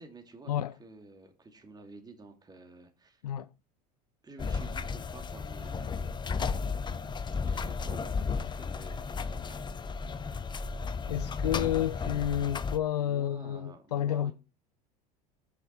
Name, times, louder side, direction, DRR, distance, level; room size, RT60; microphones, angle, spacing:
voice 1, 0.0-3.2 4.2-6.1 7.4-9.7 13.0-14.3, right 3 dB, 20° right, 2.7 m, -51 dB
sound 1, 4.4-12.8, left 5 dB, 25° left, 0.8 m, -34 dB
voice 2, 11.1-14.3, left 11 dB, 80° left, 0.4 m, -30 dB
8.6 x 6.2 x 6.0 m
hypercardioid pair, 75°, 20 cm